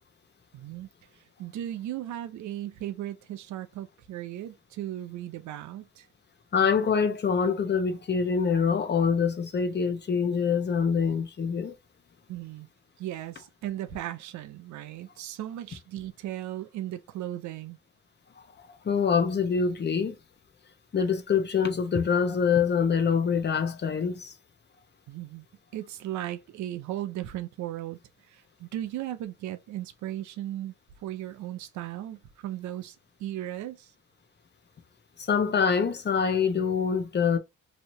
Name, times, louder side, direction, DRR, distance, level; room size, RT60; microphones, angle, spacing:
voice 1, 0.5-6.1 12.3-12.7 13.0-17.8 25.1-25.5 25.7-33.9, right 13 dB, 70° right, 0.6 m, -37 dB
voice 2, 6.5-11.7 18.8-20.1 20.9-24.3 35.2-37.4, left 6 dB, 35° left, 0.8 m, -25 dB
3.1 x 2.8 x 2.6 m
cardioid pair, 90°, 30 cm